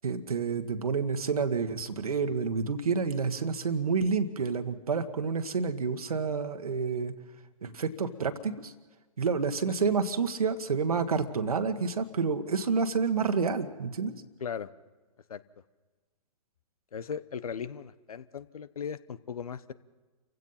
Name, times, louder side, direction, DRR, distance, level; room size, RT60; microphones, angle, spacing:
voice 1, 0.0-7.1 7.6-8.7 9.2-14.1, right 5 dB, 80° right, 8 dB, 1.6 m, -29 dB
voice 2, 14.4-14.7 15.3-15.4 16.9-19.7, left 7 dB, 75° left, 16 dB, 1.0 m, -37 dB
29.0 x 16.0 x 5.7 m, 1.3 s
hypercardioid pair, 125°, 19 cm